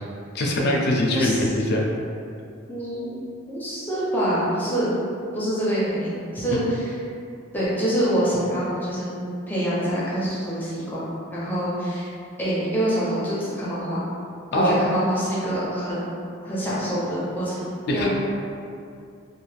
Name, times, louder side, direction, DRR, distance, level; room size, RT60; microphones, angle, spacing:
voice 1, 0.3-1.8 6.5-6.6 14.5-14.7 17.9-18.1, left 1 dB, 55° left, -1 dB, 0.4 m, -22 dB
voice 2, 1.1-1.4 2.7-3.2 3.5-4.9 5.3-6.9 7.5-9.1 9.5-12.1 12.4-14.0 14.5-16.1 16.4-17.6 17.9-18.1, equal, 10° left, -9 dB, 0.6 m, -25 dB
2.4 x 2.4 x 3.2 m, 2.5 s
head